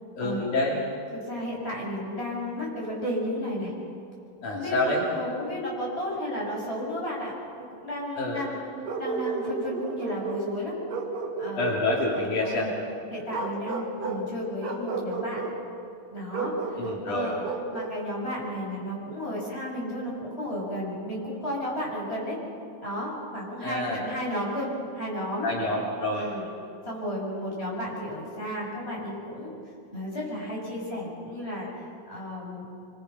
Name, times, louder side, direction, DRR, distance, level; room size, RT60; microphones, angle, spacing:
voice 1, 0.2-0.8 4.4-5.0 8.2-8.4 11.6-12.7 16.8-17.4 23.6-24.0 25.4-26.3, left 2 dB, 65° left, -3 dB, 4.7 m, -27 dB
voice 2, 1.1-3.7 4.5-8.7 9.0-10.8 11.4-11.7 12.6-12.7 13.1-15.4 16.1-17.4 17.7-22.4 22.8-25.5 26.1-26.5 26.9-29.5 29.9-31.7 32.1-32.7, equal, 15° left, -4 dB, 7.1 m, -33 dB
Bark, 8.8-10.5 10.9-12.6 13.3-14.3 14.6-15.6 16.3-18.0, right 3 dB, 75° right, 3.7 m, -32 dB
26.5 x 24.5 x 5.8 m, 2.5 s
omnidirectional pair, 3.9 m